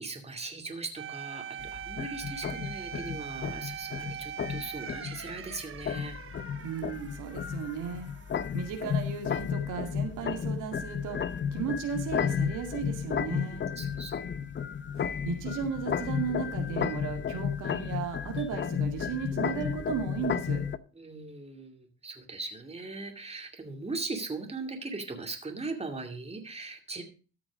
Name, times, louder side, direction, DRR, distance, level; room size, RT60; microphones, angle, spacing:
voice 1, 0.0-6.1 13.3-13.4 13.8-14.3 20.9-27.0, right 3 dB, 20° right, 4 dB, 2.3 m, -39 dB
sound 1, 1.0-9.6 9.9-10.1 14.9-15.5, right 9 dB, 45° right, 0.9 m, -43 dB
sound 2, 1.6-20.8, left 7 dB, 40° left, 0.7 m, -33 dB
voice 2, 6.6-8.1 8.5-13.6 15.2-20.6, right 7 dB, 85° right, 4 dB, 2.2 m, -35 dB
sound 3, 18.4-20.3, right 1 dB, 70° left, 4.5 m, -55 dB
13.5 x 6.2 x 5.0 m, 0.36 s
cardioid pair, 90°, 30 cm